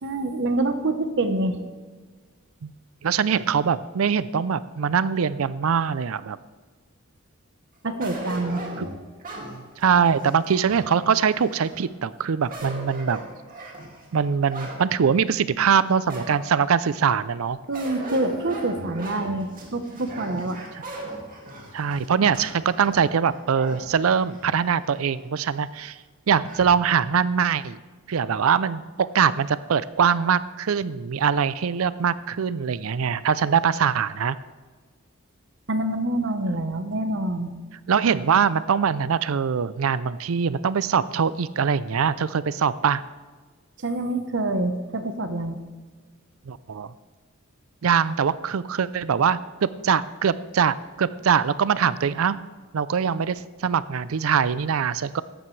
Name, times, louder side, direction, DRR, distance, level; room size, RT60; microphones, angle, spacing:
voice 1, 0.0-1.6 7.8-8.6 17.7-20.6 35.7-37.5 43.8-45.6, right 2 dB, 60° right, 8 dB, 1.1 m, -26 dB
voice 2, 3.0-6.4 8.8-8.9 9.8-13.2 14.1-17.6 20.7-20.8 21.7-26.0 26.3-27.8 28.1-34.4 37.9-43.0 46.5-46.9 47.8-52.4 52.7-55.2, right 7 dB, 85° right, 16 dB, 0.5 m, -23 dB
sound 1, 8.0-11.8 12.3-14.8 15.3-15.4 16.1-16.7 17.7-24.8 25.2-25.3 26.5-26.8, right 2 dB, 40° right, 2.4 m, -38 dB
14.5 x 11.5 x 3.3 m, 1.4 s
head